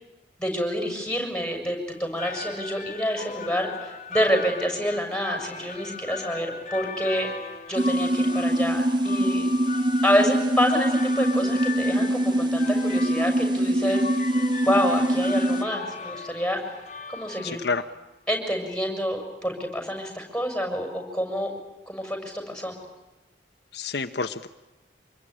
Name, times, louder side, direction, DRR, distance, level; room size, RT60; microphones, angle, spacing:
voice 1, 0.4-7.3 7.7-9.5 10.0-14.3 14.6-16.6 17.1-17.6 18.3-21.5 21.9-22.7, equal, 5° left, 4 dB, 6.9 m, -27 dB
sound 1, 1.9-17.8, left 4 dB, 40° left, 2.0 m, -38 dB
sound 2, 7.8-15.6, right 1 dB, 25° right, 1.5 m, -24 dB
voice 2, 17.4-17.9 23.7-24.5, left 4 dB, 65° left, 7 dB, 1.1 m, -29 dB
26.5 x 22.0 x 10.0 m, 1.1 s
head